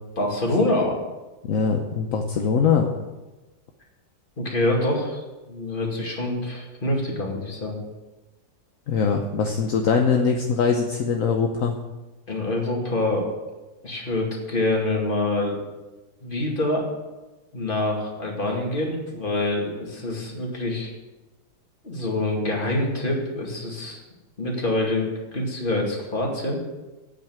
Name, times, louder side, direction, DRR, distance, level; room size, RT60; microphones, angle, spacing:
voice 1, 0.2-1.0 4.4-5.2 5.5-7.8 12.3-13.3 13.8-15.6 16.2-16.9 17.5-20.9 21.8-24.0 24.4-25.1 25.3-26.6, left 1 dB, 25° left, -1 dB, 2.4 m, -25 dB
voice 2, 1.5-2.9 8.9-11.8, left 5 dB, 55° left, 3 dB, 1.0 m, -22 dB
8.9 x 8.1 x 7.7 m, 1.1 s
omnidirectional pair, 2.1 m